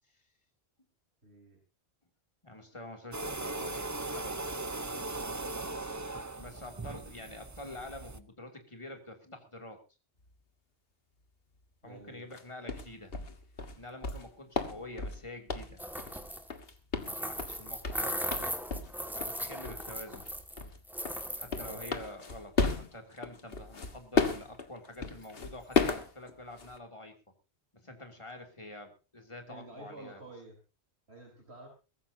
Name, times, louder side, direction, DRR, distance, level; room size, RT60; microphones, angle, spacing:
voice 1, 1.2-1.6 11.8-12.3 21.5-21.8 29.5-30.6 31.1-31.7, right 2 dB, 70° right, 1 dB, 4.4 m, -50 dB
voice 2, 2.4-4.5 6.4-9.8 11.8-13.4 13.8-15.8 17.1-18.5 19.1-20.3 21.4-27.2 27.7-30.2, left 1 dB, 25° left, 4 dB, 2.9 m, -47 dB
sound 1, 3.1-8.2, right 2 dB, 20° right, 0.7 m, -38 dB
sound 2, 12.3-12.4 12.7-16.2 16.5-19.0 19.2-19.4 19.6-19.9 20.1-26.8, left 4 dB, 60° left, 1.8 m, -33 dB
sound 3, 15.8-16.5 17.0-20.6 20.9-21.9, equal, ahead, 1.8 m, -38 dB
22.0 x 14.5 x 2.8 m, 0.31 s
omnidirectional pair, 1.1 m